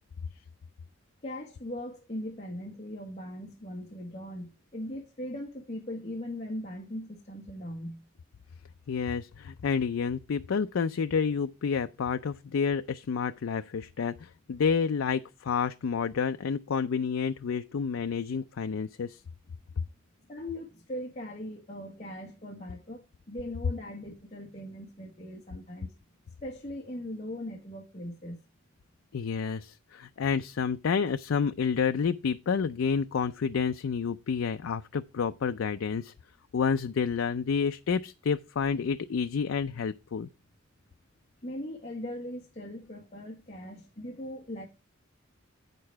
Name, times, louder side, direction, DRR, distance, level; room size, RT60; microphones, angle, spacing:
voice 1, 1.2-8.0 20.3-25.9 26.4-28.4 41.4-44.7, left 1 dB, 35° left, 1.3 m, -39 dB
voice 2, 8.9-19.2 29.1-36.1 36.5-40.3, left 6 dB, 80° left, 0.4 m, -29 dB
8.6 x 6.8 x 4.5 m
head